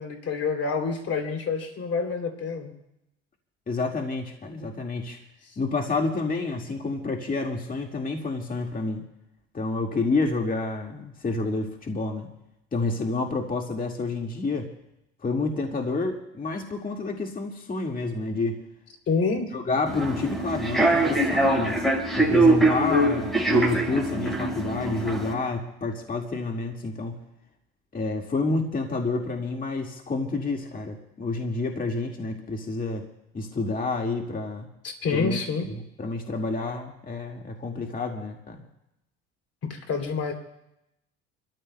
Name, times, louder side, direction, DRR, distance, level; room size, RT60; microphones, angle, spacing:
voice 1, 0.0-2.7 19.1-19.5 34.8-35.7 39.7-40.3, left 4 dB, 45° left, 5 dB, 3.0 m, -27 dB
voice 2, 3.7-5.2 5.6-9.0 9.5-12.3 12.7-14.7 15.2-18.6 19.5-21.8 22.2-27.2 27.9-33.1 33.3-34.7 35.1-35.4 35.7-38.6, left 3 dB, 25° left, 2 dB, 1.9 m, -29 dB
Human voice / Subway metro underground, 19.9-25.3, right 2 dB, ahead, 5.1 m, -23 dB
28.5 x 13.5 x 2.2 m, 0.86 s
supercardioid pair, 75°, 32 cm